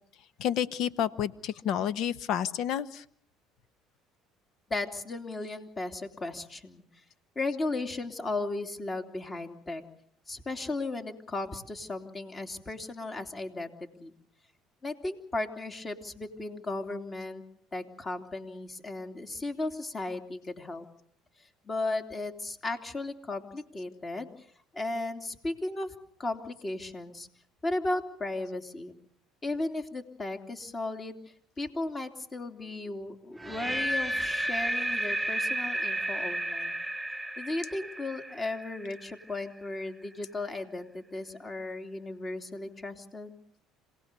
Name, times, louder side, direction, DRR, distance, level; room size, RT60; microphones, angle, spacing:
voice 1, 0.4-3.0, left 9 dB, 65° left, 15 dB, 1.1 m, -30 dB
voice 2, 4.7-6.8 7.3-9.8 10.3-13.7 14.0-14.1 14.8-17.4 17.7-20.8 21.6-24.3 24.7-25.9 26.2-27.3 27.6-29.0 29.4-31.2 31.6-36.8 37.4-43.4, left 2 dB, 25° left, 5 dB, 3.0 m, -35 dB
sound 1, 33.4-39.4, right 1 dB, 10° right, 0.9 m, -32 dB
27.0 x 18.0 x 6.9 m, 0.63 s
supercardioid pair, 100°, 0 cm